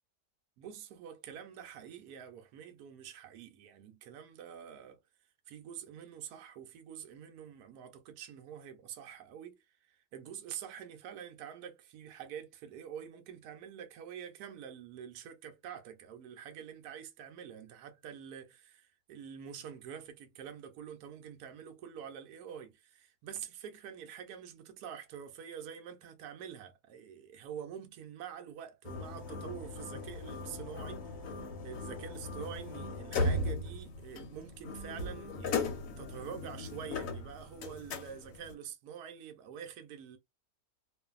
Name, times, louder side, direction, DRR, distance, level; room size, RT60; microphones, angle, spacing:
voice 1, 0.6-5.0 5.5-9.6 9.9-40.2, right 8 dB, 80° right, 1.1 m, -46 dB
sound 1, 28.8-38.5, left 2 dB, 65° left, 1.0 m, -38 dB
2.6 x 2.5 x 2.3 m
omnidirectional pair, 1.7 m